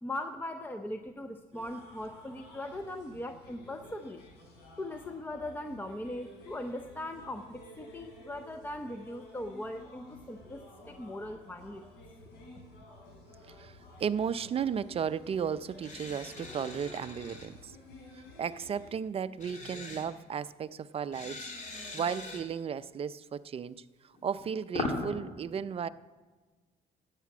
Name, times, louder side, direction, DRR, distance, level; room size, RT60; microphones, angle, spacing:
voice 1, 0.0-4.2 4.8-11.8, left 1 dB, 10° left, 7 dB, 0.6 m, -40 dB
sound 1, 1.5-18.9, left 1 dB, 90° left, 4.5 m, -53 dB
voice 2, 13.5-17.8 18.1-25.9, right 7 dB, 35° right, 15 dB, 0.4 m, -35 dB
sound 2, 15.8-17.5 19.4-20.1 21.1-22.4 24.1-25.1, left 2 dB, 45° left, 2.8 m, -39 dB
11.0 x 8.3 x 8.4 m, 1.3 s
cardioid pair, 110°, 17 cm